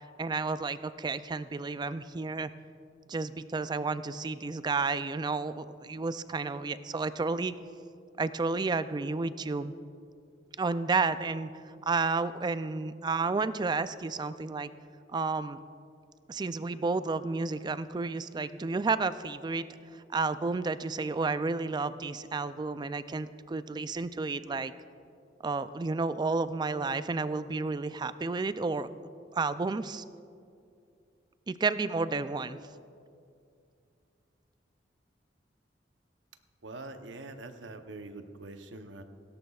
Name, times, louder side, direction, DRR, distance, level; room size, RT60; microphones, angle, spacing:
voice 1, 0.2-2.5 3.1-7.5 8.2-9.7 10.6-11.5 11.8-14.7 15.1-15.6 16.3-19.7 20.1-24.7 25.4-28.9 29.3-30.0 31.5-32.6, right 4 dB, 25° right, 13 dB, 0.3 m, -31 dB
voice 2, 36.6-39.0, right 2 dB, 80° right, 7 dB, 0.8 m, -44 dB
17.5 x 17.0 x 2.4 m, 2.4 s
head